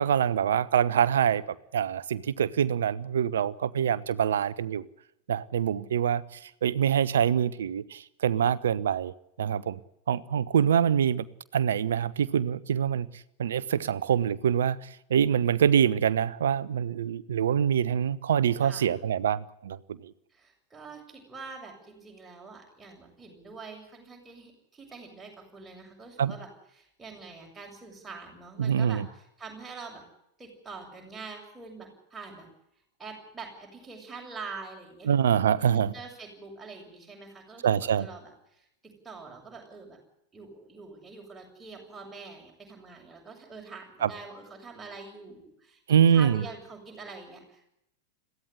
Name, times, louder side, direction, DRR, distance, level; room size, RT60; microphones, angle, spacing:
voice 1, 0.0-1.4 1.7-4.8 5.3-9.1 9.4-9.8 10.1-11.3 11.5-20.1 26.2-26.3 28.6-29.1 35.1-35.9 37.6-38.1 44.0-44.1 45.9-46.4, right 8 dB, 65° right, 17 dB, 1.0 m, -25 dB
voice 2, 18.6-19.0 20.3-26.5 26.8-30.0 30.4-32.5 33.0-40.0 40.3-47.6, right 4 dB, 10° right, 0 dB, 7.4 m, -45 dB
22.0 x 16.0 x 9.8 m, 0.79 s
figure-of-eight pair, 90°, 0 cm